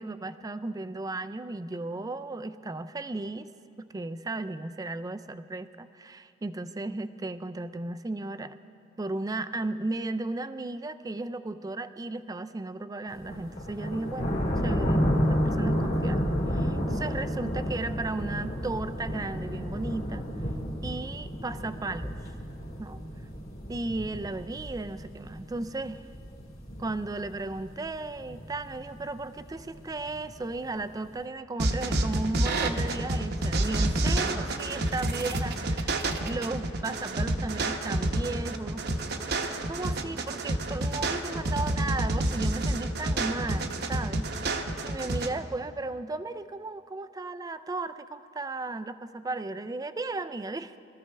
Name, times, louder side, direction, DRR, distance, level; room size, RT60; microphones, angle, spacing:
voice 1, 0.0-3.5 3.8-8.6 9.0-14.4 14.6-20.2 20.8-22.2 22.8-23.0 23.7-26.1 26.8-38.9 39.7-44.3 44.8-50.8, right 2 dB, 20° right, 12 dB, 0.3 m, -35 dB
sound 1, 13.1-31.1, equal, 45° left, 2.0 m, -31 dB
sound 2, 31.6-45.3, right 2 dB, 50° right, 0.8 m, -29 dB
22.0 x 13.5 x 3.3 m, 2.5 s
head